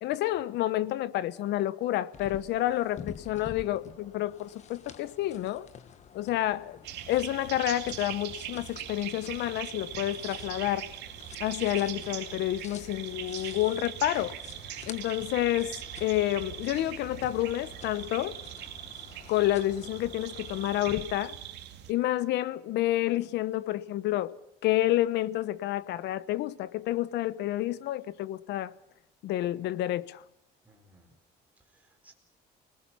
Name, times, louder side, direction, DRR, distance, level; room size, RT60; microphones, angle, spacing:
voice 1, 0.0-5.7 6.1-6.8 7.1-10.9 11.4-14.4 14.9-15.7 16.0-18.4 19.3-21.4 21.9-24.3 24.6-28.7 29.2-30.2, left 14 dB, 80° left, 1.0 m, -29 dB
sound 1, 2.1-21.0, left 7 dB, 40° left, 1.5 m, -49 dB
sound 2, 6.8-21.9, right 11 dB, 80° right, 2.6 m, -41 dB
voice 2, 18.9-19.3 30.6-31.1 31.7-32.1, equal, 10° right, 4.7 m, -61 dB
30.0 x 20.0 x 5.8 m
cardioid pair, 160°, 17 cm